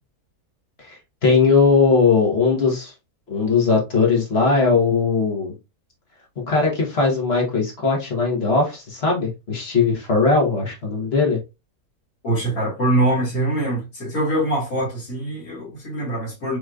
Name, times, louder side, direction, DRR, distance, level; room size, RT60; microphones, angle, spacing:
voice 1, 0.8-2.9 3.3-5.6 6.5-11.4, left 4 dB, 40° left, 1.6 m, -19 dB
voice 2, 12.2-16.6, right 1 dB, 65° left, 2.2 m, -23 dB
4.9 x 3.0 x 2.4 m
omnidirectional pair, 1.7 m